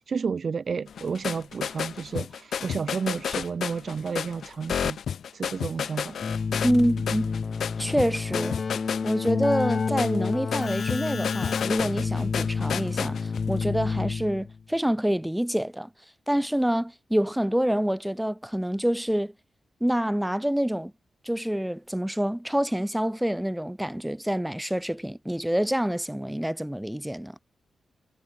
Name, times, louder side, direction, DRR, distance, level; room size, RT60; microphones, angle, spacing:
voice 1, 0.0-5.0 5.3-6.2, right 5 dB, 60° right, 3.1 m, -31 dB
sound 1, 0.9-13.6, left 8 dB, 75° left, 0.6 m, -32 dB
Keyboard (musical), 6.2-14.6, left 5 dB, 55° left, 3.1 m, -29 dB
voice 2, 6.6-7.3 7.8-8.6 9.0-13.2 13.5-15.9 16.3-19.3 19.8-20.9 21.2-27.4, equal, 5° right, 3.8 m, -27 dB
cardioid pair, 55°, 0 cm